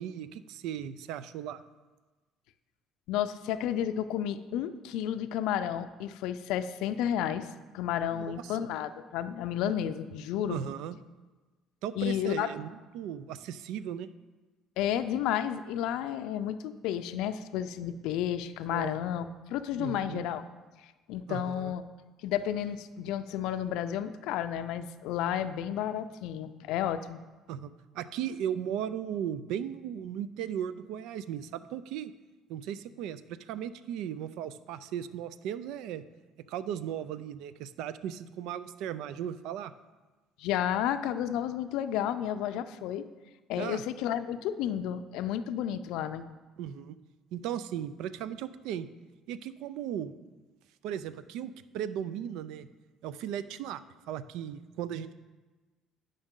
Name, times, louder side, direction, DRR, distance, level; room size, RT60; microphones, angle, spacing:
voice 1, 0.0-1.6 8.1-8.6 10.5-11.0 11.8-14.1 18.7-19.0 19.8-20.3 21.3-21.7 27.5-32.1 32.5-36.0 36.5-39.7 43.6-43.8 46.6-47.0 47.3-48.9 49.3-50.1 50.8-52.7 53.0-53.8 54.1-55.1, right 9 dB, 80° right, 15 dB, 0.3 m, -37 dB
voice 2, 3.1-7.5 7.7-10.6 12.0-12.5 14.8-20.4 21.1-21.8 22.2-27.2 40.4-43.0 43.5-46.2, left 10 dB, 80° left, 11 dB, 0.4 m, -32 dB
9.8 x 5.2 x 3.7 m, 1.2 s
cardioid pair, 120°, 0 cm